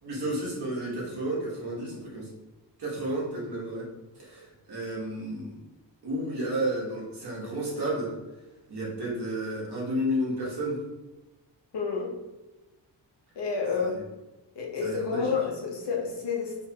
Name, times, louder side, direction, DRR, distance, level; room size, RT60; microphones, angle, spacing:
voice 1, 0.0-2.3 2.8-3.9 4.1-5.5 6.0-8.1 8.7-10.8 13.8-13.9 14.8-15.3, right 1 dB, 60° right, -5 dB, 1.3 m, -32 dB
voice 2, 11.7-12.1 13.4-14.0 14.5-16.6, left 5 dB, 70° left, 0 dB, 0.9 m, -29 dB
3.3 x 3.2 x 2.8 m, 1.1 s
wide cardioid pair, 170°, 43 cm